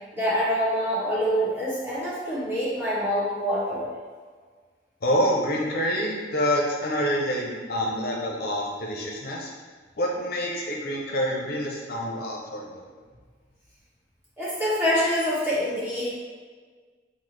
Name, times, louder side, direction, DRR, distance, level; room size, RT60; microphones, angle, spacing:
voice 1, 0.1-3.9 14.4-16.1, equal, 10° right, -10 dB, 1.3 m, -25 dB
voice 2, 5.0-9.5 10.0-12.8, equal, 60° left, -1 dB, 0.5 m, -27 dB
5.7 x 2.0 x 3.1 m, 1.5 s
head